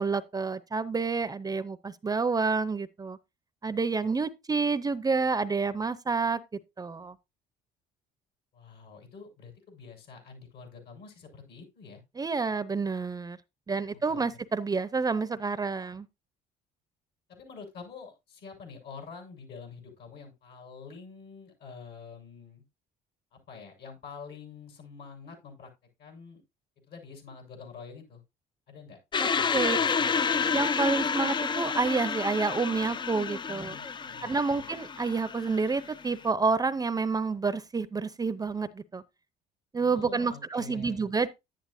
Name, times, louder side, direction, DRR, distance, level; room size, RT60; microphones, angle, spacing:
voice 1, 0.0-3.2 3.6-6.4 6.8-7.2 12.2-13.4 13.7-16.1 29.5-29.8 30.5-33.8 34.2-39.0 39.7-41.3, right 4 dB, 20° right, 0.7 m, -29 dB
voice 2, 8.5-12.0 13.9-14.2 17.3-22.6 23.3-25.7 26.0-26.4 26.9-28.2 28.7-29.0 29.3-30.6 33.5-34.6 39.8-41.0, left 5 dB, 70° left, 7.6 m, -47 dB
sound 1, 29.1-36.2, left 6 dB, 30° left, 0.5 m, -30 dB
11.0 x 10.5 x 2.7 m
cardioid pair, 110°, 17 cm